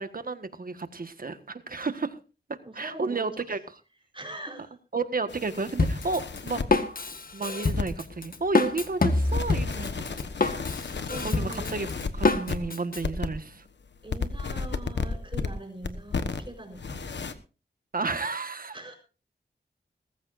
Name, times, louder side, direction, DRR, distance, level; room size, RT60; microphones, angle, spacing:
voice 1, 0.0-2.2 2.7-3.6 4.9-6.6 7.3-10.0 11.2-11.9 12.1-13.6 17.9-18.8, right 3 dB, 55° right, 1.5 m, -32 dB
voice 2, 2.6-3.6 4.1-4.8 11.1-11.8 14.0-17.2 18.7-19.0, right 1 dB, 30° right, 4.3 m, -42 dB
sound 1, 5.3-6.7 7.7-8.1 8.5-12.6 13.0-13.5 13.9-15.5 15.8-16.5 16.7-17.3, left 5 dB, 85° left, 1.2 m, -33 dB
Drum kit, 5.8-13.0, left 3 dB, 55° left, 1.6 m, -26 dB
20.5 x 14.5 x 2.6 m
wide cardioid pair, 70°, 18 cm